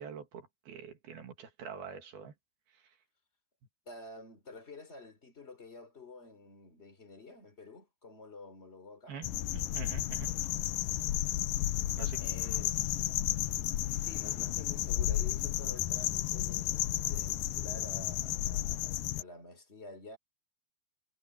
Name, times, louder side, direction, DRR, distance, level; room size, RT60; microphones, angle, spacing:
voice 1, 0.0-2.3 9.1-10.3 12.0-12.2, right 7 dB, 65° right, 3.9 m, -45 dB
voice 2, 3.8-9.2 12.2-12.7 13.8-20.2, left 2 dB, 15° left, 2.9 m, -50 dB
sound 1, 9.2-19.2, left 13 dB, 80° left, 2.1 m, -32 dB
omnidirectional pair, 5.0 m